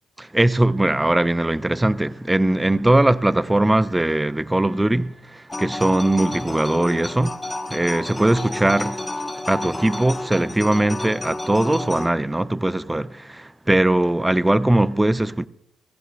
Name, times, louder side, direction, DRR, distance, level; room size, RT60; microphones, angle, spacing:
voice 1, 0.2-7.4 7.7-9.1 9.5-15.5, right 1 dB, 10° right, 0.4 m, -20 dB
sound 1, 5.5-12.1, left 1 dB, 15° left, 1.0 m, -31 dB
18.0 x 15.0 x 2.5 m
cardioid pair, 90°, 0 cm